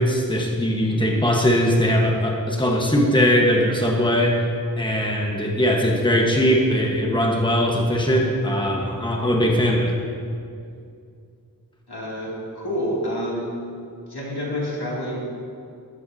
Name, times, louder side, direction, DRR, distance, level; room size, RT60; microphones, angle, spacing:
voice 1, 0.0-4.4 4.8-10.0, equal, 10° left, 0 dB, 1.4 m, -20 dB
voice 2, 11.9-13.5 14.1-15.2, equal, 85° left, -5 dB, 2.8 m, -28 dB
14.0 x 12.0 x 2.8 m, 2.4 s
wide cardioid pair, 50°, 38 cm